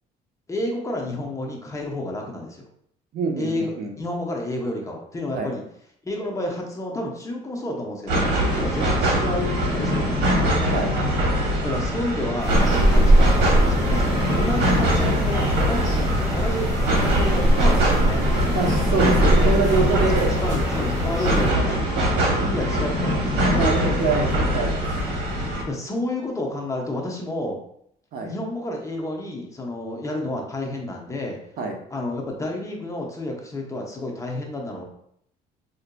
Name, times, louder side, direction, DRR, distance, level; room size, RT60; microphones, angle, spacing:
voice 1, 0.5-2.7 3.4-3.7 4.0-5.6 6.0-10.6 11.6-18.3 19.9-20.1 20.4-21.8 22.4-24.0 25.7-27.6 28.2-31.4 31.9-34.8, left 1 dB, 20° left, 0 dB, 0.7 m, -30 dB
voice 2, 3.1-3.9 5.3-5.5 10.7-10.9 16.0-16.1 18.5-20.3 23.5-24.8 28.1-28.3 31.6-31.8, right 4 dB, 60° right, 2 dB, 0.7 m, -25 dB
sound 1, 8.1-25.6, equal, 90° right, 0.9 m, -23 dB
sound 2, 12.4-21.5, equal, 20° right, 1.1 m, -22 dB
4.7 x 2.5 x 2.2 m, 0.70 s
cardioid pair, 110°, 17 cm